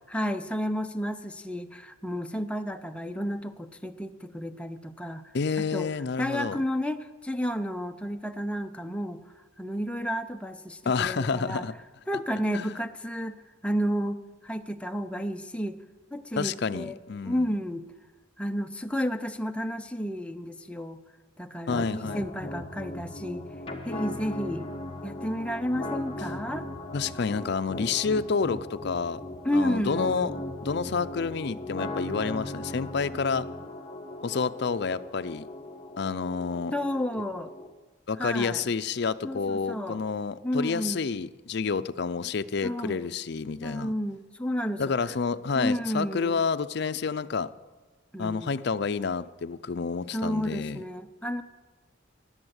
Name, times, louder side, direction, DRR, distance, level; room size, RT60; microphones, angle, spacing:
voice 1, 0.1-5.9 6.2-9.2 9.6-11.7 12.1-15.8 16.1-17.8 18.4-21.0 21.4-23.5 23.9-24.7 25.0-26.7 29.4-30.4 36.7-37.5 38.2-38.7 39.2-40.0 40.4-41.0 42.6-43.1 43.6-44.8 45.5-46.4 48.1-48.5 50.1-51.4, equal, 5° left, 6 dB, 0.6 m, -31 dB
voice 2, 5.3-6.6 10.9-11.7 12.5-12.8 16.4-17.5 21.7-22.2 26.9-29.2 29.5-30.3 30.6-33.4 34.2-35.5 36.0-36.7 38.1-43.9 44.8-47.5 48.2-50.8, left 5 dB, 55° left, 12 dB, 0.5 m, -29 dB
sound 1, 21.7-37.7, left 1 dB, 25° left, 1.2 m, -38 dB
20.0 x 7.8 x 8.0 m, 1.3 s
head